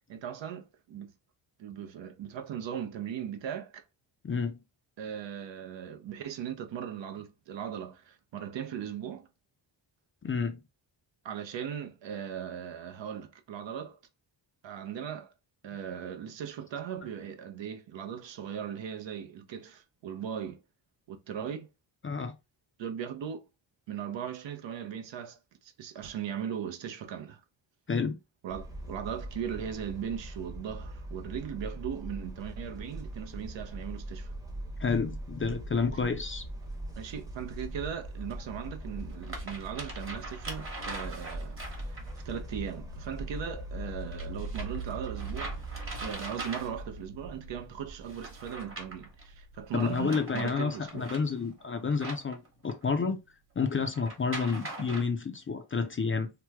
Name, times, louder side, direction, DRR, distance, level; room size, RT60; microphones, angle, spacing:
voice 1, 0.1-1.1 1.6-3.8 5.0-9.3 11.2-14.0 14.6-15.3 15.6-20.6 21.1-21.7 22.8-23.5 23.9-27.4 28.4-34.3 37.0-41.6 41.9-42.0 42.2-45.6 46.0-51.1, right 8 dB, 70° right, 0.7 m, -38 dB
voice 2, 4.2-4.6 10.2-10.6 22.0-22.3 27.9-28.2 34.8-36.4 49.7-53.2 53.6-56.3, left 5 dB, 30° left, 0.4 m, -30 dB
sound 1, 28.5-46.1, right 1 dB, 5° right, 0.7 m, -41 dB
sound 2, 32.1-50.6, right 3 dB, 90° right, 1.3 m, -47 dB
sound 3, 36.6-36.7 38.3-38.4 39.0-42.2 44.1-47.0 48.0-49.2 49.7-52.9 53.9-55.0, right 2 dB, 25° right, 1.1 m, -42 dB
3.0 x 2.1 x 3.4 m
wide cardioid pair, 120°, 46 cm